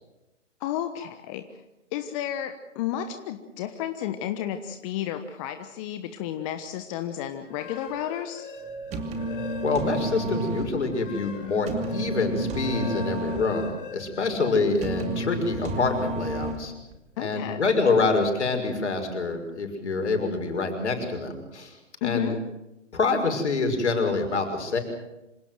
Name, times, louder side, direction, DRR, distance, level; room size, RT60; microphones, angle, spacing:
voice 1, 0.6-1.4 1.9-8.5 17.2-17.6 22.0-22.4, left 11 dB, 25° left, 8 dB, 1.2 m, -32 dB
sound 1, 7.4-10.1 10.5-14.8, left 3 dB, 45° left, 3.3 m, -41 dB
sound 2, 8.7-16.9, right 1 dB, 20° right, 2.6 m, -32 dB
voice 2, 9.6-16.7 17.2-21.7 22.0-22.3 22.9-24.8, left 3 dB, 65° left, 5 dB, 6.0 m, -26 dB
26.5 x 17.5 x 7.8 m, 0.95 s
figure-of-eight pair, 130°, 37 cm